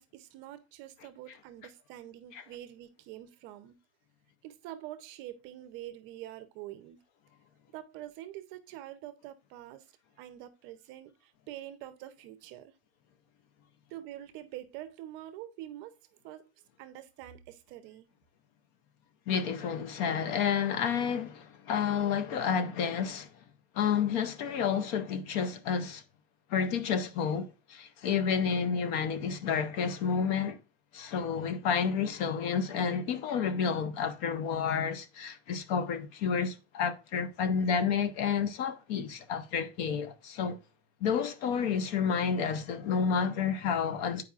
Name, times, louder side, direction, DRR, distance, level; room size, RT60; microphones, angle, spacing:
voice 1, 0.0-3.8 4.4-7.0 7.7-9.9 10.2-12.7 13.9-15.9 16.2-16.5 16.8-18.1, right 13 dB, 40° right, 0.6 m, -45 dB
voice 2, 19.3-23.3 23.7-26.0 26.5-30.6 30.9-40.6 41.0-44.2, left 6 dB, 45° left, 0.6 m, -30 dB
8.7 x 4.7 x 2.3 m
supercardioid pair, 160°, 31 cm